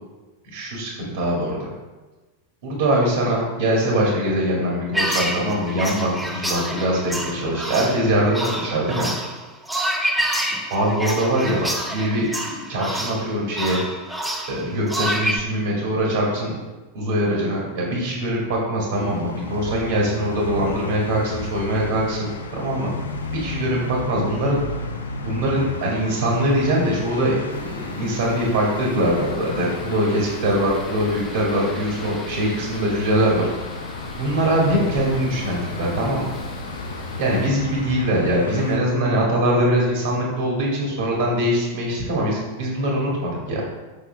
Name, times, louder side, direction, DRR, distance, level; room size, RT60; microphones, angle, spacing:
voice 1, 0.4-1.7 2.6-9.1 10.7-13.8 14.5-16.5 16.9-22.9 23.3-24.6 25.2-33.5 34.2-36.3 37.2-43.6, right 1 dB, 55° right, -3 dB, 2.1 m, -22 dB
sound 1, 4.9-15.4, right 1 dB, 5° right, 1.0 m, -27 dB
sound 2, 18.9-38.8, left 2 dB, 70° left, 0.7 m, -33 dB
sound 3, 27.5-37.5, equal, 20° left, 1.5 m, -39 dB
7.3 x 6.2 x 3.4 m, 1.2 s
figure-of-eight pair, 90°, 0 cm